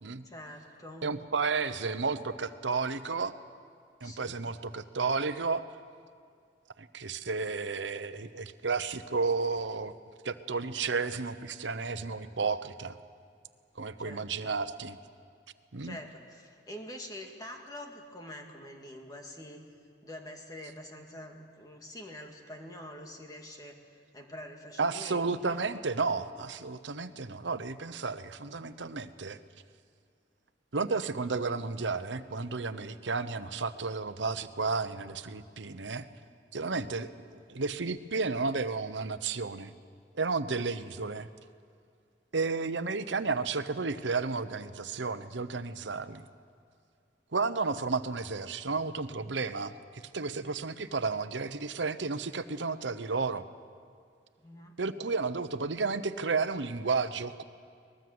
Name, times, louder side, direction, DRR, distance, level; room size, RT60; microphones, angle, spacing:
voice 1, 0.2-1.1 4.0-4.4 14.0-14.5 15.8-19.6 20.0-25.6 54.4-54.7, left 1 dB, 20° left, 2 dB, 2.1 m, -46 dB
voice 2, 1.0-3.3 4.0-5.6 6.8-10.0 10.2-13.0 13.8-15.0 15.7-16.0 24.8-29.4 30.7-36.1 36.5-39.7 40.2-41.3 42.3-46.3 47.3-53.5 54.8-57.4, right 4 dB, 85° right, 12 dB, 1.0 m, -32 dB
23.0 x 20.5 x 7.9 m, 2.2 s
head